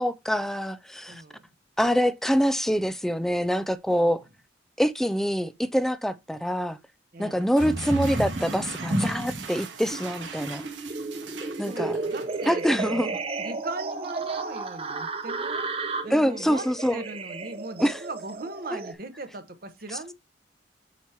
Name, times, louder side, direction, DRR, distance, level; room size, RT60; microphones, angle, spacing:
voice 1, 0.0-1.2 1.8-4.2 4.8-6.8 7.2-10.6 11.6-12.0 12.5-13.2 16.1-17.0 17.8-18.0 18.7-18.8, equal, ahead, 0.4 m, -25 dB
voice 2, 1.1-1.4 4.0-4.1 7.1-7.5 11.6-13.1 13.4-16.7 16.9-20.1, right 2 dB, 55° right, 1.0 m, -39 dB
sound 1, 7.4-13.0, right 5 dB, 85° right, 1.3 m, -41 dB
sound 2, 7.6-9.5 9.9-18.9, right 2 dB, 30° right, 0.7 m, -32 dB
8.1 x 2.9 x 4.6 m
head